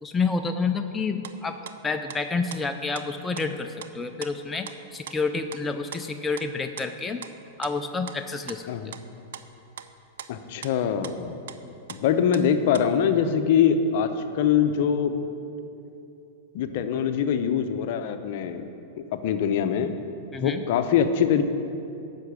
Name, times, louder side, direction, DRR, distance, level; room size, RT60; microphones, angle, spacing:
voice 1, 0.0-7.2 7.6-8.7 20.3-20.6, left 4 dB, 10° left, 6 dB, 0.4 m, -29 dB
sound 1, 1.2-1.4 1.7-2.2 2.5-2.6 3.0-3.1 3.3-3.5 3.8-3.9 4.2-4.3 4.7-4.8 5.1-5.6 5.9-6.0 6.4-6.5 6.8-6.9 7.2-7.4 7.6-10.3 10.6-10.7 11.0-11.2 11.5-11.6 11.9-12.5 12.7-12.9, right 9 dB, 80° right, 0.5 m, -40 dB
voice 2, 10.3-11.4 11.9-15.2 16.5-18.6 19.2-20.0 20.3-21.4, left 8 dB, 60° left, 9 dB, 0.7 m, -23 dB
8.3 x 6.0 x 8.1 m, 2.7 s
hypercardioid pair, 135°, 0 cm